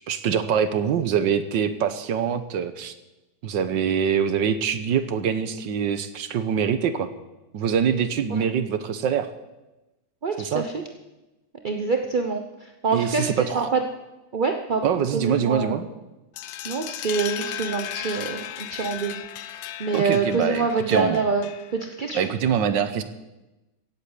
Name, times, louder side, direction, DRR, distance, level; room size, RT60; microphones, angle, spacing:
voice 1, 0.1-2.9 3.4-7.1 7.5-9.3 10.4-10.7 12.9-13.7 14.8-15.9 19.9-21.2 22.1-23.0, right 7 dB, 70° right, 11 dB, 1.6 m, -24 dB
voice 2, 10.2-10.8 11.6-13.8 14.3-15.9 16.6-19.2 19.8-22.3, right 4 dB, 45° right, 5 dB, 0.6 m, -26 dB
sound 1, 16.4-21.9, left 12 dB, 75° left, 1.4 m, -36 dB
16.5 x 8.4 x 8.1 m, 1.0 s
omnidirectional pair, 2.1 m